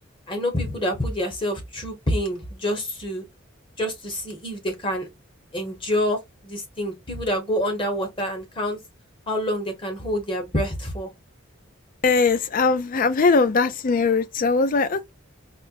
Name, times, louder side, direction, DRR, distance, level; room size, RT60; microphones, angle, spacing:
voice 1, 0.3-3.2 3.8-5.1 5.5-8.8 9.3-11.1, equal, 25° left, 1.1 m, -27 dB
voice 2, 12.0-15.1, left 4 dB, 45° left, 0.4 m, -20 dB
4.3 x 2.2 x 2.5 m
head